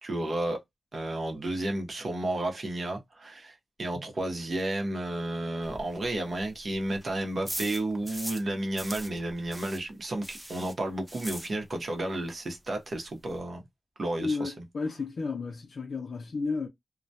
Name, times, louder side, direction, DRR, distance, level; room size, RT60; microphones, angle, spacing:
voice 1, 0.0-0.6 0.9-13.6 14.0-14.5, right 1 dB, 50° right, 0.8 m, -32 dB
sound 1, 5.6-8.5 8.7-12.0 12.2-12.3 12.6-12.7 12.9-13.4, right 1 dB, 10° right, 0.4 m, -41 dB
voice 2, 14.2-16.7, left 4 dB, 60° left, 0.5 m, -32 dB
2.2 x 2.1 x 2.6 m
wide cardioid pair, 125°, 0 cm